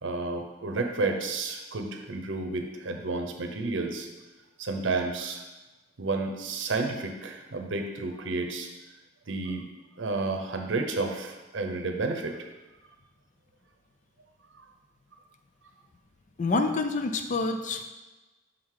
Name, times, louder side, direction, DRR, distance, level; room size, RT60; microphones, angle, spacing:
voice 1, 0.0-4.1 4.6-5.4 6.0-8.7 9.3-9.7 10.0-12.5 14.5-14.6, right 3 dB, 85° right, 4 dB, 0.7 m, -31 dB
voice 2, 16.4-17.8, left 3 dB, 40° left, 7 dB, 0.4 m, -27 dB
6.1 x 3.8 x 4.7 m, 1.1 s
head